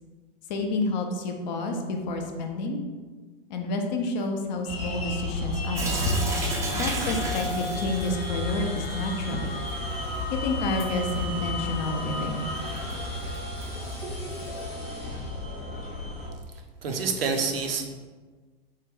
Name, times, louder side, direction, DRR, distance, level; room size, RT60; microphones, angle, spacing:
voice 1, 0.5-2.8 3.5-6.1 6.7-9.5 10.3-12.5, left 2 dB, 50° left, 3 dB, 0.5 m, -29 dB
sound 1, 4.7-16.3, left 2 dB, 90° left, 0.8 m, -32 dB
Sink (filling or washing) / Drip, 5.8-14.7, right 2 dB, 10° right, 0.4 m, -36 dB
voice 2, 16.8-17.8, right 4 dB, 75° right, 3 dB, 0.5 m, -27 dB
3.2 x 2.2 x 3.5 m, 1.4 s
figure-of-eight pair, 95°, 29 cm